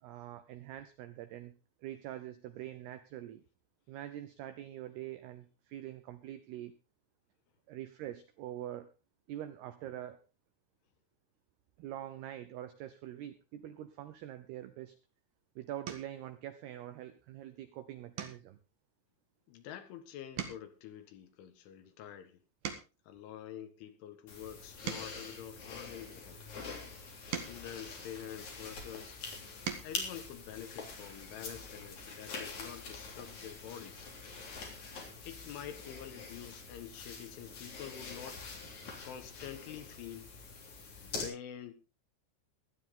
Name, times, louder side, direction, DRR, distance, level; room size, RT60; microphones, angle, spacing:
voice 1, 0.0-1.5 1.8-3.4 3.9-6.7 7.7-8.9 9.3-10.2 11.8-14.9 15.6-18.6, right 12 dB, 85° right, 2.3 m, -44 dB
sound 1, 15.0-15.2 15.8-16.2 16.7-17.1 17.4-17.6 18.1-19.9 20.2-23.2 23.8-26.2 26.9-28.8 29.3-30.0 31.4-31.5 31.8-32.0, right 8 dB, 55° right, 2.5 m, -45 dB
voice 2, 19.5-22.4 23.1-26.4 27.3-29.2 29.8-34.1 35.2-38.4 39.0-40.3 41.0-41.7, left 9 dB, 75° left, 3.7 m, -47 dB
sound 2, 24.3-41.2, left 4 dB, 40° left, 4.0 m, -45 dB
17.0 x 12.5 x 3.8 m
omnidirectional pair, 5.8 m